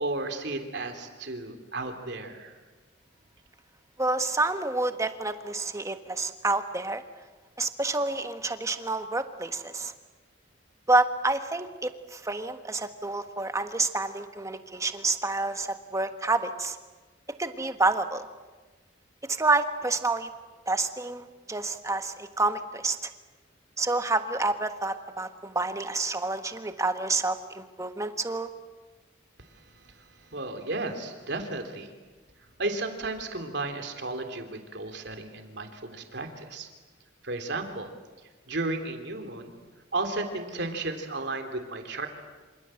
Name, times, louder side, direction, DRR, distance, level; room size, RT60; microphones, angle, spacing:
voice 1, 0.0-2.6 29.4-31.9 32.6-36.7 37.2-37.9 38.2-39.6 39.9-42.1, right 2 dB, 65° right, 5 dB, 3.4 m, -34 dB
voice 2, 4.0-7.0 7.6-9.9 10.9-16.8 17.4-18.2 19.3-20.3 20.7-23.1 23.8-28.5, right 3 dB, 15° right, 8 dB, 1.5 m, -28 dB
27.0 x 27.0 x 7.8 m, 1.3 s
head